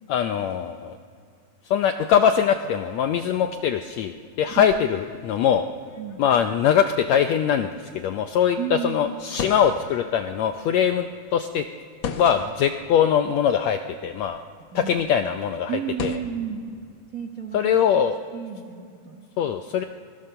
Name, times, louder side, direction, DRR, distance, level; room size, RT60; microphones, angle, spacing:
voice 1, 0.1-0.9 1.7-5.6 6.2-7.7 7.9-11.1 11.3-11.6 12.2-14.4 14.7-15.7 16.0-16.2 17.5-18.2 19.4-19.8, left 8 dB, 80° left, 7 dB, 1.5 m, -22 dB
sound 1, 2.9-16.2, left 6 dB, 65° left, 1.2 m, -40 dB
voice 2, 8.6-9.2 14.7-15.0 15.7-16.6 17.1-17.8 18.3-19.6, right 8 dB, 90° right, 3 dB, 0.7 m, -32 dB
28.0 x 21.0 x 6.8 m, 2.3 s
omnidirectional pair, 4.0 m